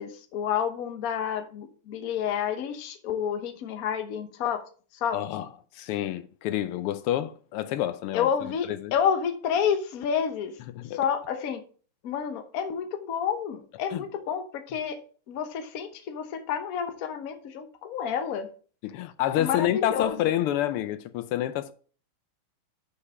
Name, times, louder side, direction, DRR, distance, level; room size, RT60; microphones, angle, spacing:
voice 1, 0.0-4.6 5.0-5.2 8.1-10.5 10.9-11.6 12.0-15.0 15.3-18.5 19.4-20.3, left 8 dB, 50° left, 1.1 m, -29 dB
voice 2, 5.1-5.5 5.7-8.9 10.7-11.0 13.9-14.0 18.8-21.7, left 12 dB, 85° left, 1.6 m, -28 dB
6.5 x 5.5 x 4.7 m
omnidirectional pair, 2.4 m